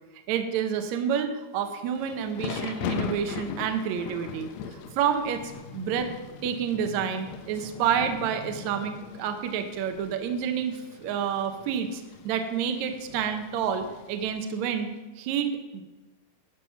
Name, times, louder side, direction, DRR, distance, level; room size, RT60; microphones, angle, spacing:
voice 1, 0.3-6.1 6.4-15.8, right 8 dB, 70° right, 6 dB, 1.8 m, -29 dB
Thunder / Rain, 1.7-14.7, left 7 dB, 85° left, 1.6 m, -40 dB
sound 1, 4.5-10.3, left 3 dB, 10° right, 3.1 m, -48 dB
11.5 x 5.9 x 5.7 m, 1.1 s
omnidirectional pair, 3.9 m